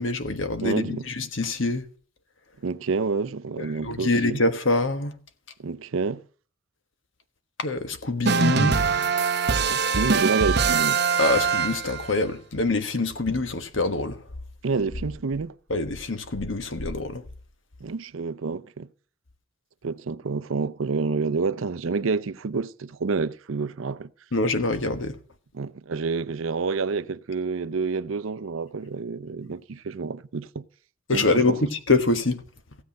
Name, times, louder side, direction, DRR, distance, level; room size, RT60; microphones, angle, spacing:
voice 1, 0.0-1.8 3.8-5.1 7.6-8.8 11.2-14.2 15.7-17.2 24.3-25.1 31.1-32.4, left 2 dB, 70° left, 1.4 m, -25 dB
voice 2, 0.6-1.1 2.6-4.4 5.6-6.2 9.6-11.0 14.6-15.5 17.8-18.9 19.8-24.1 25.5-30.7 31.1-31.6, right 4 dB, 85° right, 0.6 m, -28 dB
sound 1, 8.2-12.1, right 5 dB, 55° right, 0.9 m, -23 dB
16.0 x 8.0 x 6.4 m
head